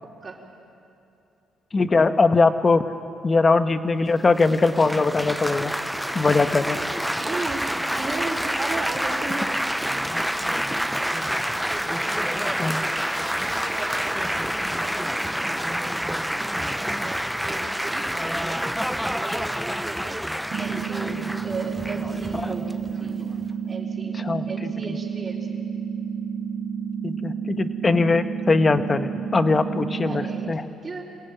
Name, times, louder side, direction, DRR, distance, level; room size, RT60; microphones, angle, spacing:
voice 1, 0.0-0.4 7.2-11.3 11.7-12.5 12.9-18.7 19.2-20.2 20.6-22.7 23.0-23.3 23.7-24.2 24.5-25.6 30.0-30.5 30.8-31.0, right 3 dB, 35° right, -2 dB, 4.3 m, -37 dB
voice 2, 1.7-2.8 3.2-5.7 6.1-6.8 12.6-12.8 24.2-24.4 27.0-30.6, left 3 dB, 30° left, 9 dB, 1.2 m, -21 dB
Laughter / Applause / Chatter, 4.4-23.5, equal, ahead, 0.5 m, -28 dB
sound 1, 20.5-30.5, right 7 dB, 70° right, 1.8 m, -30 dB
28.0 x 17.5 x 9.0 m, 2.7 s
cardioid pair, 90°, 0 cm